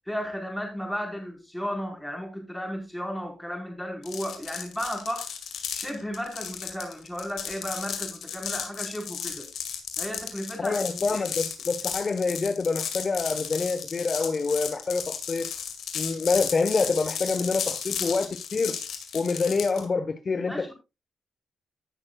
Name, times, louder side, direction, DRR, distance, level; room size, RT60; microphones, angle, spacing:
voice 1, 0.1-5.3 5.8-9.5 10.0-11.3 20.5-20.7, equal, 5° left, 4.1 m, -34 dB
sound 1, 4.0-19.9, left 7 dB, 75° left, 2.0 m, -34 dB
voice 2, 10.6-15.5 15.9-18.8 19.1-20.7, left 4 dB, 40° left, 0.9 m, -26 dB
17.0 x 6.3 x 2.3 m
cardioid pair, 70°, 0 cm